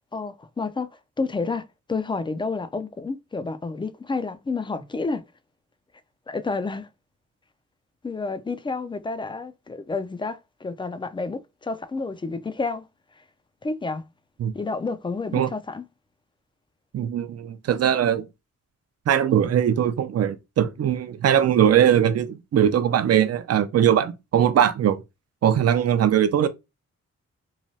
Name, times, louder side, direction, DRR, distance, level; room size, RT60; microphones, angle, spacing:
voice 1, 0.1-0.9 1.2-5.3 6.3-6.9 8.0-12.9 13.6-14.1 14.5-15.8, left 3 dB, 15° left, 0.3 m, -30 dB
voice 2, 16.9-18.3 19.1-25.0 25.4-26.5, right 9 dB, 55° right, 0.5 m, -20 dB
3.1 x 2.2 x 2.6 m
cardioid pair, 65°, 30 cm